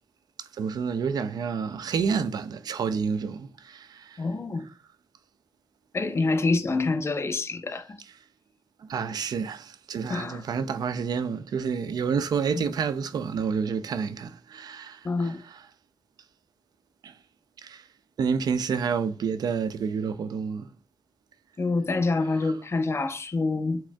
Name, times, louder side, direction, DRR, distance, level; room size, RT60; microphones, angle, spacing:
voice 1, 0.4-4.2 8.8-15.3 17.0-17.1 17.6-17.8 18.2-20.7, right 6 dB, 75° right, 0.4 m, -29 dB
voice 2, 4.2-4.6 5.9-8.0 10.1-10.4 12.5-12.6 15.0-15.4 21.6-23.8, left 3 dB, 40° left, 0.6 m, -26 dB
6.2 x 3.5 x 2.2 m
cardioid pair, 80°, 7 cm